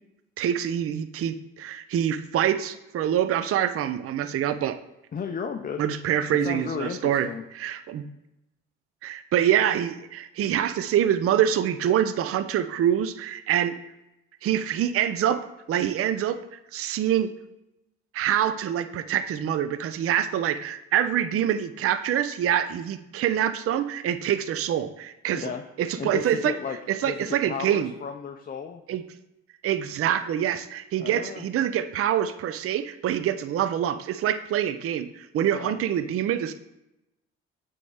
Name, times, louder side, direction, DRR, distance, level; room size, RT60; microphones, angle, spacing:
voice 1, 0.4-4.8 5.8-7.3 7.5-8.1 9.0-13.7 14.4-15.4 15.7-17.3 18.1-25.5 25.8-26.5 26.9-27.9 28.9-29.0 29.6-36.5, right 10 dB, 45° right, 11 dB, 0.5 m, -25 dB
voice 2, 5.1-5.8 6.3-7.4 25.3-25.6 26.0-28.8 31.0-31.5 35.5-35.8, left 6 dB, 30° left, 5 dB, 0.5 m, -34 dB
8.3 x 3.6 x 3.4 m, 0.89 s
supercardioid pair, 60°, 32 cm